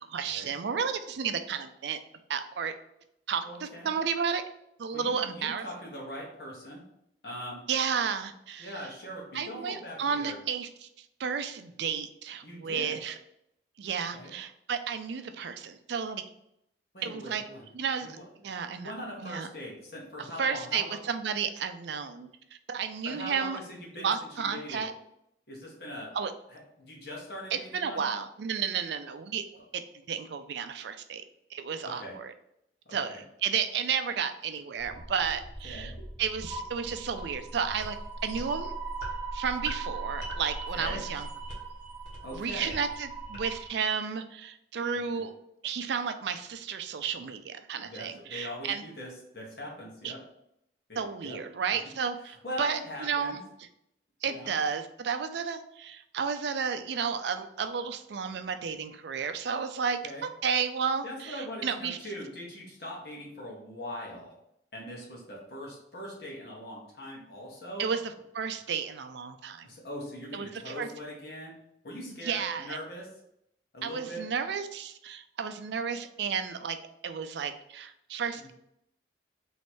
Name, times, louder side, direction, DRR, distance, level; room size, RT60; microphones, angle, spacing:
voice 1, 0.0-2.0 2.3-2.7 3.3-4.4 4.8-5.7 7.7-8.7 9.3-13.2 13.8-16.2 17.0-17.4 17.7-18.2 18.4-18.9 19.2-19.5 20.4-22.3 22.7-23.6 24.0-24.9 26.1-26.3 27.5-29.4 29.7-29.8 30.1-31.2 31.5-32.3 32.9-35.9 36.2-38.7 39.3-41.3 42.3-45.3 45.6-48.8 50.0-50.1 51.0-53.4 54.2-62.0 67.8-68.0 68.3-69.7 70.3-70.9 72.2-72.8 73.8-76.8 77.0-78.5, right 6 dB, 65° right, 9 dB, 0.4 m, -32 dB
voice 2, 3.4-3.9 4.9-6.8 7.2-7.6 8.6-10.4 12.4-13.0 14.1-14.3 16.9-17.7 18.0-18.2 18.7-21.0 23.0-24.1 24.4-24.8 25.5-26.1 26.5-28.1 31.8-32.1 32.8-33.2 35.6-35.9 40.7-41.0 42.2-42.7 45.1-45.2 47.8-50.2 50.9-51.4 52.2-53.4 54.2-54.5 60.0-60.2 61.0-64.3 64.7-67.8 69.6-71.6 71.8-73.1 73.7-74.2 78.4-78.5, equal, 55° left, -3 dB, 1.4 m, -41 dB
sound 1, 34.8-43.7, right 2 dB, 75° left, 1.6 m, -39 dB
3.1 x 3.1 x 4.3 m, 0.77 s
head